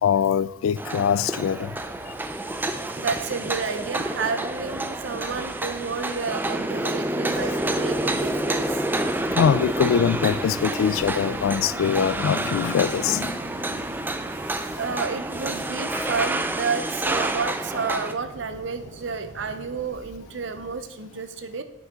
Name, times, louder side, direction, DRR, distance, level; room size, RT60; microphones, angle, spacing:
voice 1, 0.0-1.8 7.3-7.4 9.3-13.8 15.9-16.1, left 7 dB, 85° left, 0.3 m, -23 dB
sound 1, 0.8-18.1, right 1 dB, 10° right, 0.3 m, -28 dB
sound 2, 1.4-20.8, right 1 dB, 35° right, 1.0 m, -48 dB
voice 2, 3.0-8.7 14.8-21.6, right 5 dB, 60° right, 0.6 m, -30 dB
sound 3, 7.9-16.3, equal, 65° left, 2.5 m, -46 dB
9.2 x 6.2 x 3.6 m
head